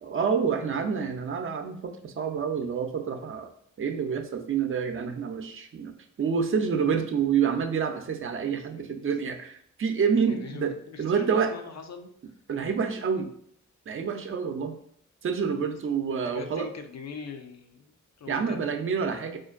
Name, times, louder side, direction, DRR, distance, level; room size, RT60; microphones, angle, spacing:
voice 1, 0.0-3.5 3.8-10.7 11.0-11.5 12.5-13.3 13.9-14.8 15.2-16.7 18.3-19.4, right 6 dB, 45° right, 7 dB, 0.5 m, -28 dB
voice 2, 10.3-12.1 16.3-18.9, left 5 dB, 60° left, 6 dB, 0.5 m, -42 dB
4.3 x 2.5 x 2.5 m, 0.65 s
cardioid pair, 55°, 31 cm